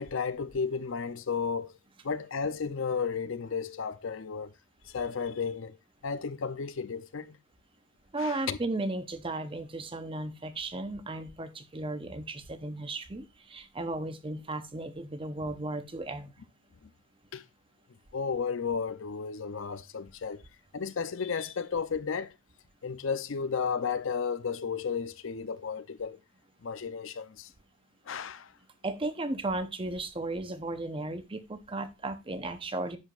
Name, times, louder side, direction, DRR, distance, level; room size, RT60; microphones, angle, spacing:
voice 1, 0.0-1.7 2.0-4.5 4.8-5.8 6.0-7.4 8.2-8.6 16.8-16.9 17.3-17.4 18.1-20.4 20.7-22.4 22.8-26.2 26.6-27.5 28.1-28.5, left 5 dB, 60° left, 0.6 m, -33 dB
voice 2, 8.1-16.3 28.8-33.0, right 2 dB, 25° right, 0.8 m, -35 dB
10.5 x 7.2 x 2.4 m
head